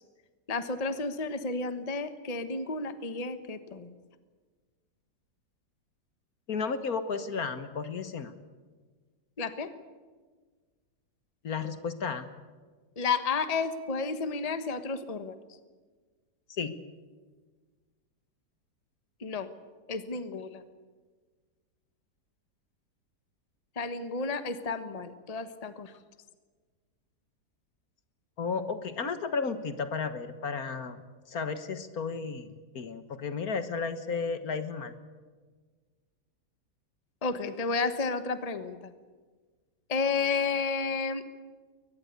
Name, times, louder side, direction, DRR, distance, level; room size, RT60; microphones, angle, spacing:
voice 1, 0.5-3.9 9.4-9.7 13.0-15.4 19.2-19.5 19.9-20.6 23.8-25.9 37.2-38.9 39.9-41.2, left 4 dB, 25° left, 10 dB, 1.2 m, -31 dB
voice 2, 6.5-8.3 11.4-12.3 16.6-16.8 28.4-31.0 31.3-34.9, left 5 dB, 60° left, 10 dB, 1.8 m, -33 dB
22.5 x 20.0 x 8.2 m, 1.4 s
omnidirectional pair, 1.8 m